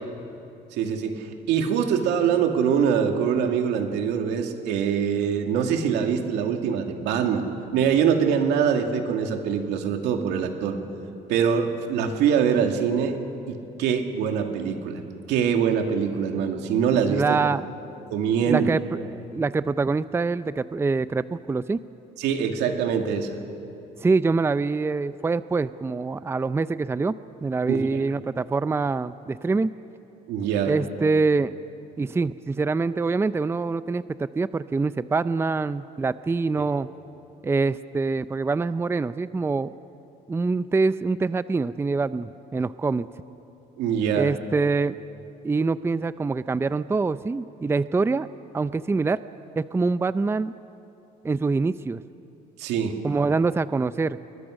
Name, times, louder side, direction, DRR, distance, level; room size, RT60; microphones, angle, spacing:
voice 1, 0.7-10.8 11.3-13.2 13.5-15.0 15.3-17.4 18.1-18.7 22.2-23.3 27.7-27.8 30.3-30.7 36.6-36.7 43.8-44.3 52.6-53.0, right 7 dB, 90° right, 4 dB, 2.4 m, -24 dB
voice 2, 17.1-17.7 18.4-21.8 24.0-27.1 27.4-29.7 30.6-31.5 32.0-36.9 37.4-39.7 40.3-43.1 44.1-45.0 45.4-48.3 48.5-49.2 49.6-50.5 51.2-52.0 53.0-54.2, right 4 dB, 15° right, 14 dB, 0.5 m, -25 dB
29.0 x 22.0 x 6.5 m, 2.8 s
cardioid pair, 110°, 17 cm